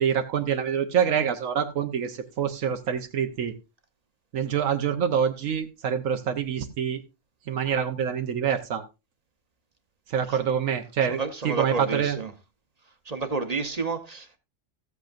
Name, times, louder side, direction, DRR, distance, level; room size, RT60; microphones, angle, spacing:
voice 1, 0.0-3.5 4.3-7.0 7.5-8.8 10.1-12.2, right 8 dB, 85° right, 1.2 m, -26 dB
voice 2, 11.1-12.3 13.1-14.4, right 4 dB, 35° right, 0.9 m, -30 dB
14.5 x 8.3 x 2.5 m
omnidirectional pair, 1.3 m